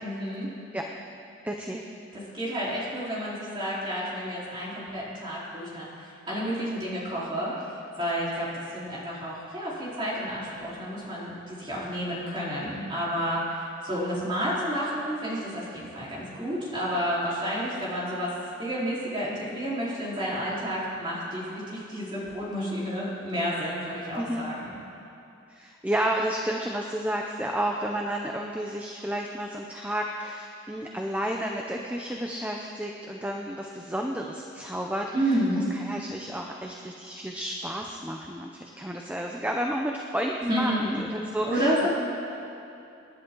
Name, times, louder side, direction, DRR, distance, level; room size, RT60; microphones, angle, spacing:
voice 1, 0.0-0.5 2.1-5.9 6.3-18.3 18.6-24.8 35.1-35.7 40.5-41.0 41.5-41.9, equal, 25° right, -8 dB, 4.1 m, -30 dB
voice 2, 1.4-1.8 24.2-24.4 25.5-41.9, right 1 dB, 5° right, 1 dB, 0.6 m, -31 dB
27.0 x 10.5 x 3.9 m, 2.7 s
head